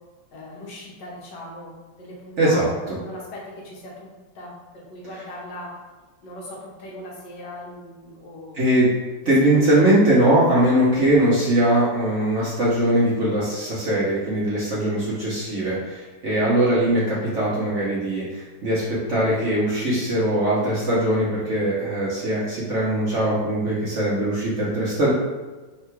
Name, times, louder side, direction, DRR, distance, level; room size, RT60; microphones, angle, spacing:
voice 1, 0.3-5.8 6.2-8.7 9.4-9.6 16.3-16.7, left 1 dB, 70° left, -3 dB, 1.6 m, -39 dB
voice 2, 2.4-2.7 8.5-8.9 9.2-25.1, right 1 dB, 55° right, -7 dB, 0.9 m, -21 dB
3.7 x 2.3 x 4.4 m, 1.3 s
omnidirectional pair, 2.1 m